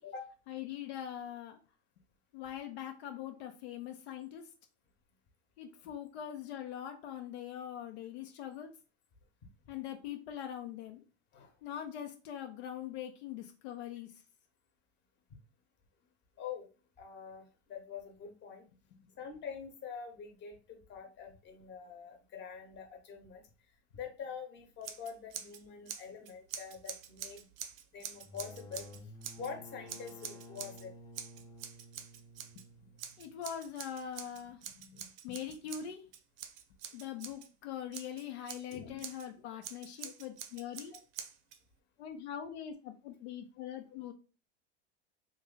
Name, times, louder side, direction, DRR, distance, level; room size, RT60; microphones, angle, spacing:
voice 1, 0.5-1.6 2.3-4.4 5.6-8.7 9.7-11.0 11.6-14.1 19.0-19.1 33.2-36.0 36.9-40.9 42.0-44.1, left 9 dB, 70° left, 4 dB, 0.7 m, -42 dB
voice 2, 17.0-18.7 19.2-23.4 23.9-27.4 27.9-28.8 29.3-30.9 38.7-39.0 43.6-43.7, left 6 dB, 30° left, 3 dB, 1.0 m, -45 dB
Scissors, 24.8-25.6 25.9-29.5 29.9-30.8 31.1-32.6 33.0-37.5 37.9-39.3 39.6-41.6, right 9 dB, 55° right, 0.6 m, -46 dB
sound 1, 28.2-33.7, left 1 dB, 10° left, 0.8 m, -53 dB
3.1 x 2.6 x 3.8 m, 0.35 s
supercardioid pair, 115°, 34 cm